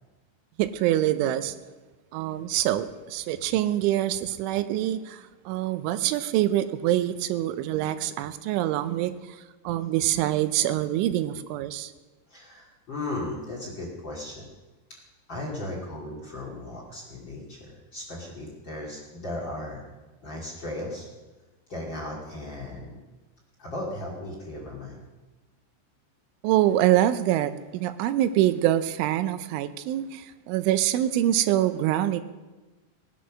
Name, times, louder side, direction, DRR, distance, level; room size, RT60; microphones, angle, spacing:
voice 1, 0.6-1.6 2.1-11.9 26.4-32.2, right 13 dB, 85° right, 12 dB, 3.1 m, -25 dB
voice 2, 12.3-14.5 15.3-19.8 20.2-21.1 21.7-23.0 23.6-25.0, left 1 dB, 30° left, -2 dB, 2.4 m, -36 dB
19.5 x 10.5 x 6.3 m, 1.2 s
omnidirectional pair, 5.4 m